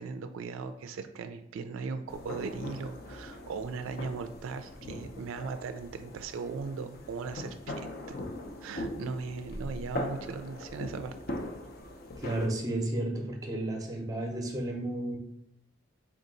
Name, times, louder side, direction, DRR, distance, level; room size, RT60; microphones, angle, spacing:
voice 1, 0.0-7.7 8.1-8.2 8.6-11.2, right 4 dB, 85° right, 8 dB, 0.3 m, -38 dB
sound 1, 2.1-12.5, left 1 dB, 50° left, 0.5 m, -41 dB
voice 2, 12.2-15.2, right 1 dB, 20° right, 2 dB, 0.6 m, -32 dB
3.5 x 2.7 x 3.8 m, 0.74 s
head